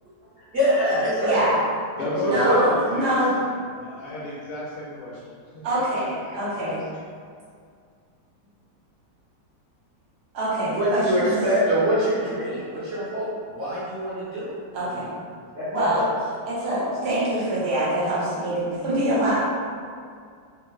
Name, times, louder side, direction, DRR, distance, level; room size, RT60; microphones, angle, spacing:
voice 1, 0.5-1.5 2.2-2.8 10.8-14.5 14.8-15.1 15.5-16.1, equal, 45° right, -11 dB, 1.0 m, -24 dB
voice 2, 1.2-1.6 2.3-3.3 5.6-6.8 10.3-11.3 14.7-15.1 15.7-16.0 16.4-19.4, right 1 dB, 65° right, -8 dB, 1.4 m, -24 dB
voice 3, 2.0-5.9 6.2-6.8, left 1 dB, 65° left, -9 dB, 1.1 m, -35 dB
3.4 x 2.1 x 3.1 m, 2.2 s
omnidirectional pair, 1.9 m